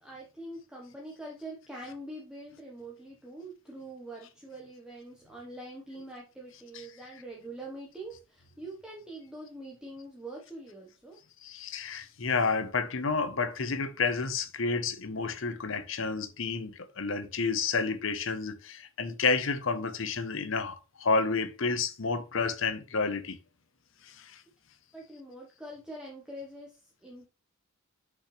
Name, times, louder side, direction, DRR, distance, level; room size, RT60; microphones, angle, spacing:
voice 1, 0.0-11.2 24.9-27.3, right 1 dB, 5° right, 1.0 m, -44 dB
voice 2, 11.4-23.4 24.0-24.4, left 4 dB, 65° left, 0.8 m, -30 dB
6.7 x 5.4 x 3.2 m
head